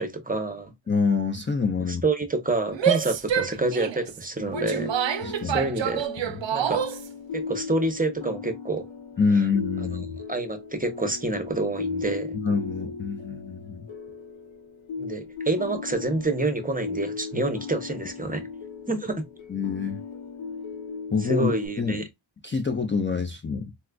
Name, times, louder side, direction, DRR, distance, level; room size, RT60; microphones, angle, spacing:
voice 1, 0.0-0.7 1.9-6.1 6.5-6.9 7.3-8.8 9.4-9.5 10.3-12.4 15.0-18.5 18.9-19.2 21.2-22.0, right 2 dB, 20° right, 0.7 m, -28 dB
voice 2, 0.9-2.0 5.2-5.9 6.2-6.4 9.2-10.2 12.3-13.9 19.5-20.0 21.1-22.0 22.4-23.7, left 5 dB, 25° left, 0.4 m, -26 dB
Female speech woman speaking / Yell, 2.7-7.1, right 9 dB, 75° right, 0.5 m, -27 dB
sound 1, 4.5-21.7, left 4 dB, 90° left, 0.8 m, -37 dB
4.1 x 2.3 x 2.3 m
wide cardioid pair, 55°, 46 cm